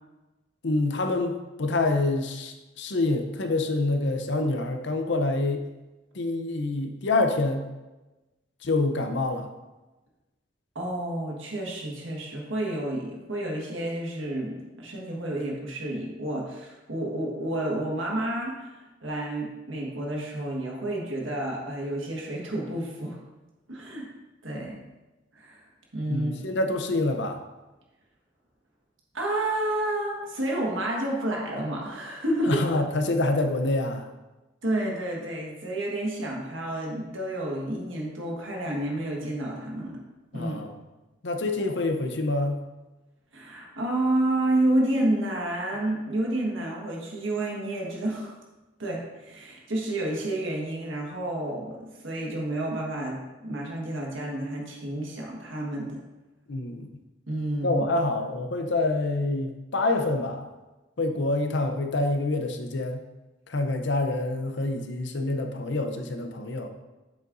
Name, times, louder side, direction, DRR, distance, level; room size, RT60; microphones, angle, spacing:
voice 1, 0.6-5.6 6.1-7.6 8.6-9.5 26.1-27.4 32.5-34.1 40.3-40.7 41.2-42.6 56.5-56.9 57.6-60.4 61.0-63.0 63.5-66.7, left 2 dB, 65° left, 5 dB, 0.8 m, -26 dB
voice 2, 10.7-18.7 19.0-23.2 23.7-24.1 24.4-24.7 25.3-25.6 25.9-26.3 29.1-32.6 34.6-40.0 40.3-40.6 43.3-48.3 48.8-56.0 57.3-57.8, right 1 dB, 80° right, -2 dB, 1.6 m, -30 dB
7.7 x 7.3 x 2.7 m, 1.1 s
head